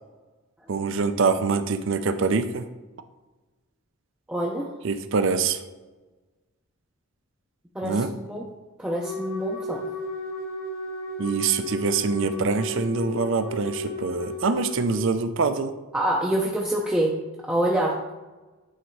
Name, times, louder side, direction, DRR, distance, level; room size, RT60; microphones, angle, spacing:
voice 1, 0.7-2.7 4.8-5.6 7.8-8.1 11.2-15.7, right 4 dB, 60° right, 10 dB, 0.5 m, -24 dB
voice 2, 4.3-4.7 7.7-8.4 8.8-9.8 15.9-17.1 17.4-18.0, right 1 dB, 5° right, -4 dB, 0.5 m, -26 dB
Wind instrument woodwind instrument, 9.0-15.1, left 2 dB, 70° left, 1.6 m, -34 dB
8.9 x 3.0 x 4.6 m, 1.2 s
head